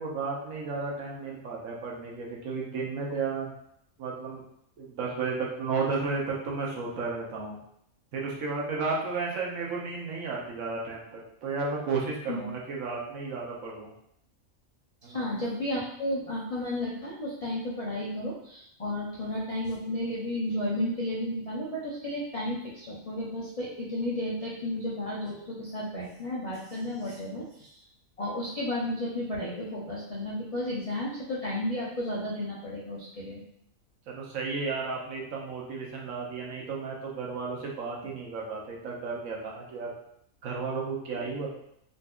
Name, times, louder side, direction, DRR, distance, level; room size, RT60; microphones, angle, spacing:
voice 1, 0.0-3.5 4.0-4.4 4.8-7.6 8.1-13.9 15.0-15.3 34.1-39.9 40.4-41.5, right 4 dB, 75° right, -2 dB, 1.1 m, -33 dB
voice 2, 15.1-27.7 28.2-33.4, left 1 dB, 70° left, -6 dB, 0.3 m, -33 dB
3.9 x 2.5 x 2.3 m, 0.73 s
omnidirectional pair, 1.5 m